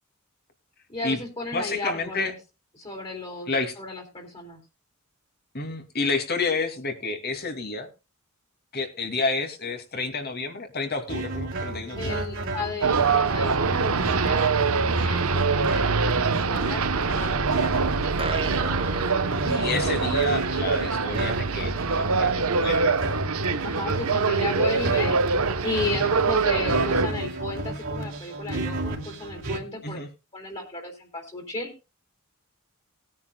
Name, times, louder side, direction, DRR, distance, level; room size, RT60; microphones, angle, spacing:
voice 1, 0.9-2.3 2.8-4.6 12.0-18.1 23.6-25.2 25.6-30.0 30.3-31.9, left 2 dB, 30° left, 3.5 m, -34 dB
voice 2, 1.5-2.3 3.5-3.7 5.5-7.9 8.7-12.2 19.4-23.0 25.9-26.1 29.8-30.1, left 3 dB, 50° left, 2.6 m, -30 dB
sound 1, 11.1-29.6, right 2 dB, 65° right, 2.6 m, -32 dB
sound 2, 12.8-27.1, right 4 dB, 85° right, 1.0 m, -24 dB
sound 3, 18.2-20.1, right 3 dB, 25° right, 1.5 m, -35 dB
20.0 x 9.5 x 2.3 m
head